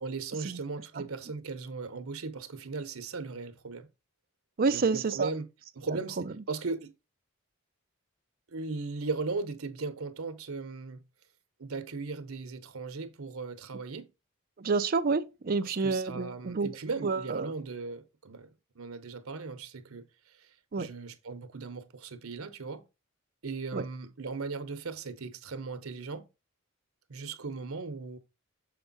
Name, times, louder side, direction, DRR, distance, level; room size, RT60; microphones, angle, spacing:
voice 1, 0.0-3.9 4.7-5.5 5.7-6.9 8.5-11.0 11.6-14.1 15.6-20.1 20.4-20.5 20.8-22.8 23.4-26.2 27.1-28.2, right 4 dB, 80° right, 0.9 m, -37 dB
voice 2, 4.6-5.3 5.9-6.0 14.6-16.7 17.0-17.5 20.7-20.9 23.7-23.9, right 4 dB, 45° right, 0.5 m, -28 dB
6.8 x 4.5 x 4.0 m
head